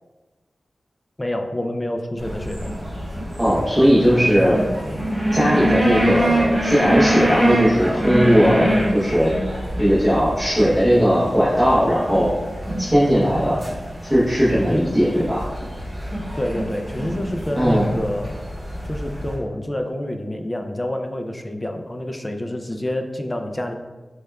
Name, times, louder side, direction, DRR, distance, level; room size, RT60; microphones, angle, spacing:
voice 1, 1.2-2.7 14.7-14.9 16.3-18.4 18.8-23.7, left 1 dB, 20° left, 5 dB, 0.3 m, -27 dB
sound 1, 2.2-19.3, right 1 dB, 25° right, 1.4 m, -25 dB
voice 2, 3.4-4.6 5.3-9.3 9.8-12.3 12.8-13.6 14.1-15.4 17.5-17.8, equal, 5° right, -10 dB, 0.9 m, -18 dB
6.3 x 2.3 x 2.2 m, 1.3 s
wide cardioid pair, 110°, 0 cm